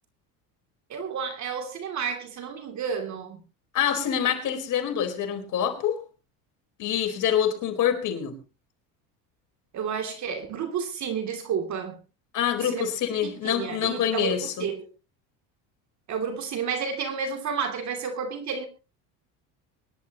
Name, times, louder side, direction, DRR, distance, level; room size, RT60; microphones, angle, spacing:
voice 1, 0.9-3.4 9.7-12.0 12.6-12.9 13.2-14.9 16.1-18.7, right 6 dB, 45° right, 6 dB, 2.9 m, -31 dB
voice 2, 3.7-6.0 6.8-8.4 12.3-14.7, left 9 dB, 50° left, 5 dB, 4.5 m, -26 dB
24.0 x 11.5 x 3.0 m, 0.32 s
supercardioid pair, 110°, 38 cm